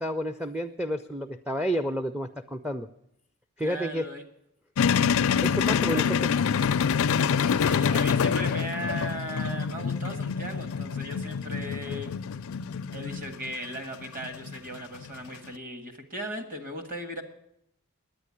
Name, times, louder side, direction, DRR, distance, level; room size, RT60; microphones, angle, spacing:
voice 1, 0.0-2.9 3.6-4.1 5.4-6.3, equal, 5° right, 6 dB, 0.4 m, -30 dB
voice 2, 3.6-4.2 5.7-6.8 7.3-12.2 12.9-17.2, right 1 dB, 40° right, 6 dB, 1.6 m, -38 dB
sound 1, 4.8-15.5, left 7 dB, 65° left, 0.4 m, -26 dB
10.5 x 9.0 x 9.7 m, 0.77 s
head